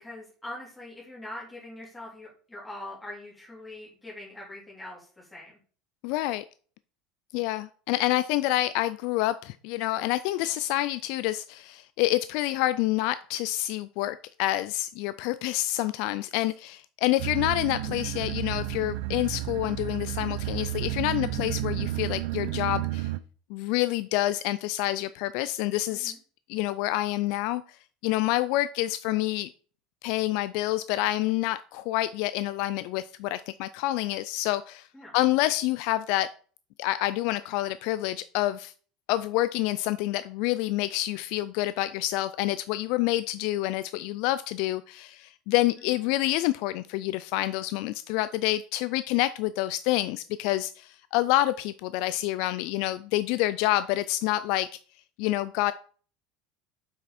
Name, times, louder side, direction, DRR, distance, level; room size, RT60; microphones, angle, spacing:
voice 1, 0.0-5.6 25.9-26.2 34.9-35.1 45.9-46.1, left 1 dB, 5° left, -6 dB, 3.7 m, -43 dB
voice 2, 6.0-6.4 7.3-23.1 23.5-26.1 26.5-27.6 28.0-29.5 30.0-34.9 35.1-36.3 36.8-38.7 39.1-54.7 55.2-55.7, left 16 dB, 55° left, 14 dB, 0.3 m, -27 dB
sound 1, 17.2-23.2, right 14 dB, 65° right, 0.5 m, -32 dB
7.5 x 6.0 x 4.2 m, 0.42 s
cardioid pair, 175°, 0 cm